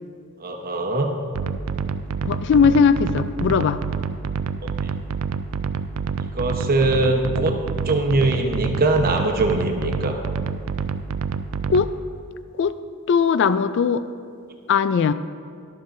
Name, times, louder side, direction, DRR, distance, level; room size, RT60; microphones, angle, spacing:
voice 1, 0.4-1.1 4.6-4.9 6.2-7.6 7.8-10.2, right 2 dB, 45° right, 3 dB, 1.0 m, -22 dB
sound 1, 1.3-11.9, right 5 dB, 80° right, 0.4 m, -27 dB
voice 2, 2.2-3.8 11.7-11.9 12.6-12.7 13.1-14.0 14.7-15.1, left 6 dB, 60° left, 13 dB, 0.3 m, -18 dB
12.5 x 11.5 x 2.6 m, 2.2 s
head